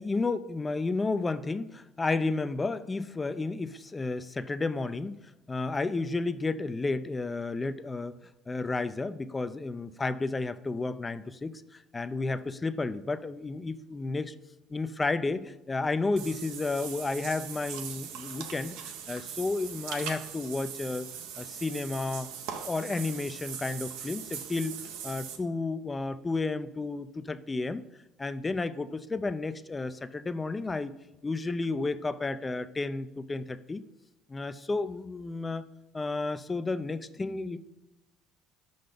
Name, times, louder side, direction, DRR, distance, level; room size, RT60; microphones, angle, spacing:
voice 1, 0.0-5.2 5.5-8.1 8.5-14.3 14.7-21.1 21.4-22.3 22.6-27.8 28.2-30.9 31.2-33.8 34.3-35.6 35.9-37.6, left 3 dB, 20° left, 13 dB, 0.4 m, -32 dB
Water / Bathtub (filling or washing), 16.2-25.4, right 8 dB, 80° right, 0.7 m, -40 dB
5.5 x 3.9 x 5.1 m, 1.0 s
supercardioid pair, 90°, 0 cm